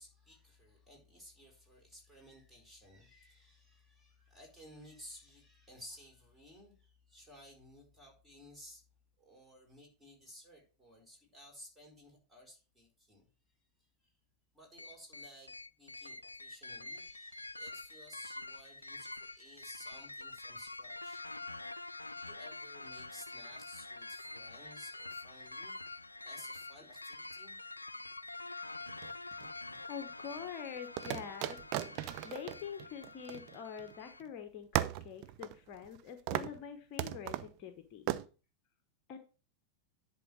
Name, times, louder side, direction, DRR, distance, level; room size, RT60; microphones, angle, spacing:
voice 1, 0.0-8.8 9.2-13.3 13.8-13.9 14.5-21.2 22.1-27.6, equal, 10° right, 0 dB, 4.8 m, -56 dB
sound 1, 14.8-34.2, left 3 dB, 85° left, 0.3 m, -46 dB
sound 2, 28.9-29.8 31.0-33.9 34.2-34.3 34.7-36.0 36.3-36.6 37.0-37.5 38.1-38.2, right 14 dB, 45° right, 0.5 m, -37 dB
voice 2, 29.9-31.6 31.9-38.2 39.1-39.2, left 8 dB, 40° left, 7 dB, 1.0 m, -45 dB
10.5 x 4.0 x 6.3 m, 0.35 s
figure-of-eight pair, 90°, 0 cm